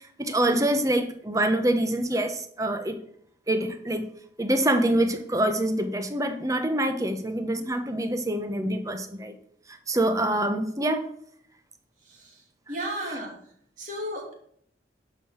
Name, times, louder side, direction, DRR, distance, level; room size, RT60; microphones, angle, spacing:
voice 1, 0.2-3.0 3.5-4.1 4.4-9.3 9.9-11.1 12.7-12.8, right 1 dB, 20° right, 1.0 m, -25 dB
voice 2, 12.7-13.3 13.8-14.3, equal, 45° right, 3.0 m, -32 dB
11.5 x 5.7 x 5.8 m
head